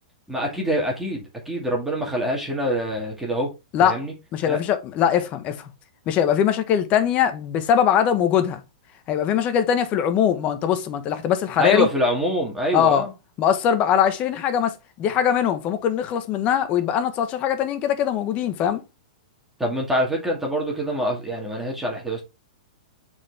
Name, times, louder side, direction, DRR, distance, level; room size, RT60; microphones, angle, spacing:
voice 1, 0.3-3.5 3.8-4.1 4.5-4.6 11.6-13.1 19.6-22.2, equal, 5° right, 2.2 m, -25 dB
voice 2, 3.7-4.0 4.3-5.7 6.1-8.6 9.1-11.9 12.7-13.1 13.4-18.8, left 9 dB, 30° left, 1.2 m, -21 dB
7.2 x 4.7 x 3.5 m
hypercardioid pair, 140°, 4 cm